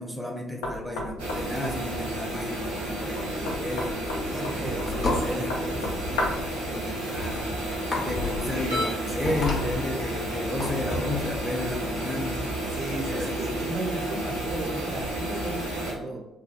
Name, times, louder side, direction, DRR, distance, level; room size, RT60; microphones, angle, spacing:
voice 1, 0.0-6.2 6.6-7.6 8.0-12.5 13.1-13.8, left 1 dB, ahead, 0 dB, 0.6 m, -33 dB
Knock, 0.6-6.5, left 2 dB, 75° left, 0.4 m, -34 dB
sound 1, 1.2-15.9, right 1 dB, 90° right, 0.7 m, -31 dB
voice 2, 4.3-5.9 6.4-6.7 12.7-16.3, right 2 dB, 50° right, 0 dB, 0.4 m, -35 dB
sound 2, 4.7-11.2, left 2 dB, 50° left, 1.0 m, -32 dB
3.2 x 2.2 x 2.4 m, 0.93 s
figure-of-eight pair, 45°, 0 cm